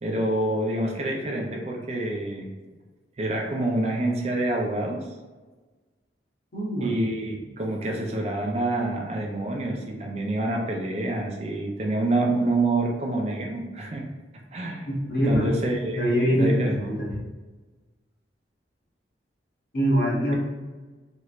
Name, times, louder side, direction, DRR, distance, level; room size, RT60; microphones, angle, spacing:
voice 1, 0.0-2.5 3.2-5.1 6.8-14.0 14.5-14.9 15.2-16.0 16.3-16.8, right 2 dB, 35° right, 0 dB, 0.4 m, -27 dB
voice 2, 6.5-7.0 14.9-15.5 15.9-17.2 19.7-20.3, equal, 60° left, -4 dB, 1.0 m, -24 dB
3.0 x 3.0 x 2.4 m, 1.3 s
head